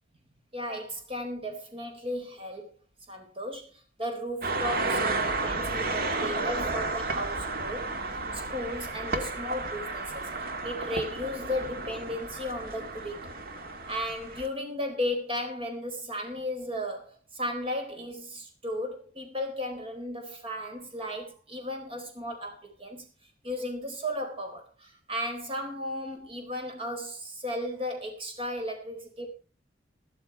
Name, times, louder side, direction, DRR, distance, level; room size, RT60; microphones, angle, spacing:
voice 1, 0.5-2.8 3.1-10.3 10.6-13.2 13.9-23.1 23.4-29.3, left 1 dB, 30° right, 4.2 m, -35 dB
sound 1, 4.4-14.5, right 3 dB, 55° right, 1.8 m, -32 dB
13.5 x 13.0 x 4.6 m
head